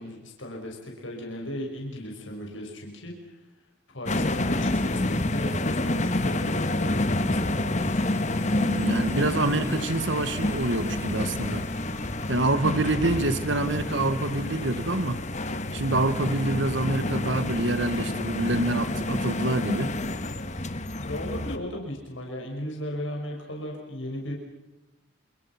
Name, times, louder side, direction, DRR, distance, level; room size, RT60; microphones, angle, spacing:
voice 1, 0.0-3.4 3.9-8.0 21.0-24.3, left 1 dB, 80° left, 0 dB, 5.9 m, -36 dB
sound 1, 4.1-21.6, left 1 dB, 40° left, 1.5 m, -28 dB
sound 2, 7.8-15.8, left 2 dB, 15° left, 4.1 m, -51 dB
voice 2, 8.5-11.6 12.3-15.2 15.7-19.9, right 2 dB, 75° right, 12 dB, 1.7 m, -26 dB
29.5 x 28.0 x 6.0 m, 0.93 s
head